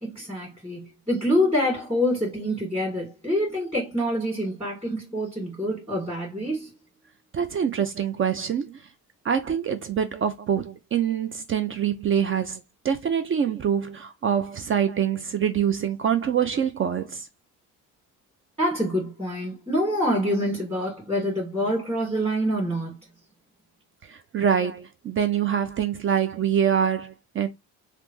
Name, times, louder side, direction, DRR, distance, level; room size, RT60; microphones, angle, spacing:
voice 1, 0.0-6.7 18.6-23.0, equal, 15° right, 1.8 m, -26 dB
voice 2, 7.3-8.8 9.2-17.3 24.0-27.5, right 8 dB, 35° right, 0.4 m, -25 dB
3.2 x 2.0 x 3.0 m
cardioid pair, 85°, 35 cm